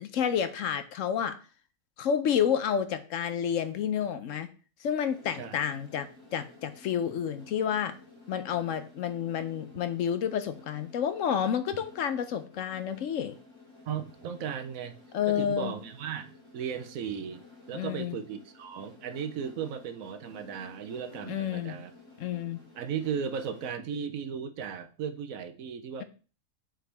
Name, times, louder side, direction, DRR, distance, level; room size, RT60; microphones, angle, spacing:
voice 1, 0.0-1.4 2.0-4.5 4.8-7.9 8.3-13.4 15.1-15.7 17.7-18.2 21.3-21.8 22.2-22.6, left 8 dB, 70° left, 11 dB, 0.9 m, -30 dB
sound 1, 5.1-23.7, left 2 dB, 45° left, 3.7 m, -54 dB
voice 2, 13.9-14.9 15.3-21.9 22.7-26.0, right 7 dB, 70° right, 9 dB, 1.1 m, -36 dB
7.9 x 4.9 x 3.4 m, 0.37 s
omnidirectional pair, 1.5 m